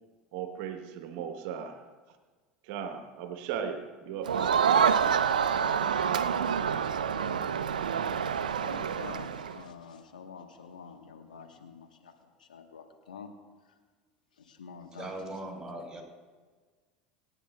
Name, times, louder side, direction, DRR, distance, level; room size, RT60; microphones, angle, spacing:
voice 1, 0.3-1.8 2.6-4.9, right 8 dB, 60° right, 6 dB, 1.2 m, -37 dB
Crowd, 4.2-9.6, right 7 dB, 85° right, 0.6 m, -27 dB
voice 2, 8.3-13.3 13.7-13.8 14.4-15.3, left 6 dB, 85° left, 5 dB, 1.4 m, -48 dB
voice 3, 15.0-16.0, right 1 dB, 15° right, -1 dB, 4.5 m, -39 dB
27.0 x 9.9 x 2.4 m, 1.4 s
hypercardioid pair, 80°, 4 cm